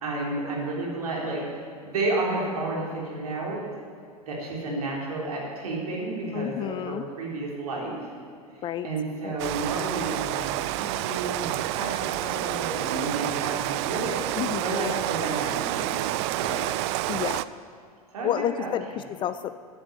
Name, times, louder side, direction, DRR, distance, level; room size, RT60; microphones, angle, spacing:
voice 1, 0.0-3.6 4.2-8.1 8.5-11.9 12.2-16.8 18.1-18.3 18.6-18.7, right 2 dB, 70° right, -3 dB, 3.8 m, -31 dB
voice 2, 6.3-7.0 8.6-8.9 9.2-9.4 14.4-14.7 17.1-17.4 18.2-19.5, left 11 dB, 25° left, 12 dB, 0.4 m, -30 dB
Rain, 9.4-17.4, right 16 dB, 45° right, 0.4 m, -29 dB
9.9 x 8.5 x 7.6 m, 2.3 s
figure-of-eight pair, 95°, 20 cm